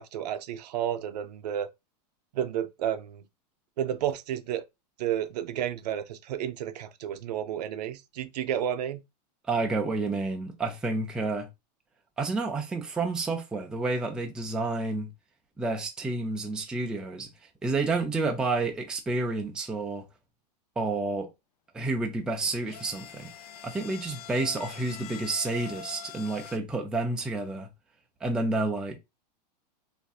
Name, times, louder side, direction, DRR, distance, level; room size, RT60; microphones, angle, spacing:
voice 1, 0.0-1.7 2.3-3.2 3.8-4.6 5.0-9.0, right 10 dB, 75° right, 0.5 m, -31 dB
voice 2, 9.5-11.5 12.2-15.1 15.6-17.3 17.6-20.0 20.8-21.3 21.7-23.3 23.6-27.7 28.2-29.0, right 3 dB, 5° right, 0.3 m, -30 dB
sound 1, 22.4-26.6, left 8 dB, 65° left, 0.4 m, -44 dB
3.5 x 2.5 x 2.3 m
supercardioid pair, 140°, 21 cm